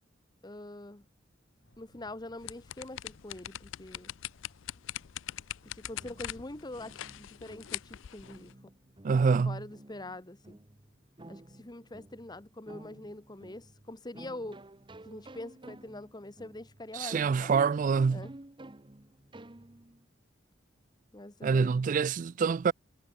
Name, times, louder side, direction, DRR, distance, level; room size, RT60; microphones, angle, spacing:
voice 1, 0.4-1.0 1.8-4.1 5.6-8.5 9.4-10.6 11.3-14.6 15.0-17.5 18.1-18.3 21.1-21.8, left 2 dB, 20° left, 1.3 m, -44 dB
sound 1, 1.6-7.2, left 1 dB, 65° left, 5.0 m, -63 dB
sound 2, 2.4-8.5, left 13 dB, 85° left, 0.4 m, -42 dB
sound 3, 5.8-20.0, right 1 dB, 25° right, 1.1 m, -52 dB
voice 2, 9.0-9.6 16.9-18.2 21.4-22.7, right 5 dB, 45° right, 0.3 m, -26 dB
head